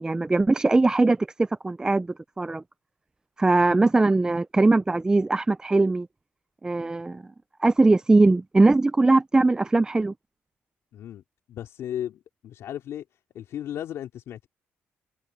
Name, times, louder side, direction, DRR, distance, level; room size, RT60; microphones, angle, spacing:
voice 1, 0.0-2.1 2.4-2.6 3.4-6.1 6.6-7.2 7.6-10.1, right 2 dB, 15° right, 0.5 m, -20 dB
voice 2, 10.9-11.2 11.5-13.0 13.3-14.5, left 11 dB, 70° left, 3.3 m, -35 dB
cardioid pair, 110°, 5 cm